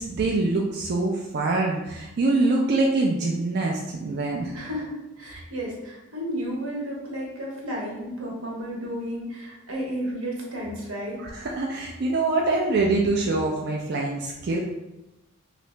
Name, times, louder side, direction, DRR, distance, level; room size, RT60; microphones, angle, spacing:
voice 1, 0.0-4.5 11.2-14.6, right 2 dB, 50° right, -1 dB, 0.3 m, -24 dB
voice 2, 4.5-11.2, equal, 85° right, -2 dB, 1.0 m, -32 dB
2.8 x 2.6 x 3.2 m, 0.97 s
head